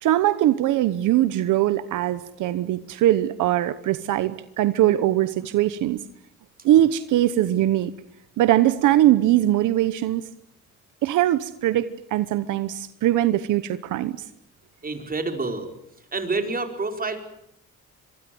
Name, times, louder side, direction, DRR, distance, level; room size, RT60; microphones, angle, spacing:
voice 1, 0.0-6.0 6.6-7.9 8.4-10.2 11.0-14.2, right 13 dB, 85° right, 13 dB, 1.0 m, -21 dB
voice 2, 14.8-15.7 16.0-17.2, right 3 dB, 30° right, 5 dB, 4.9 m, -28 dB
26.0 x 23.5 x 7.8 m, 0.77 s
cardioid pair, 90°, 30 cm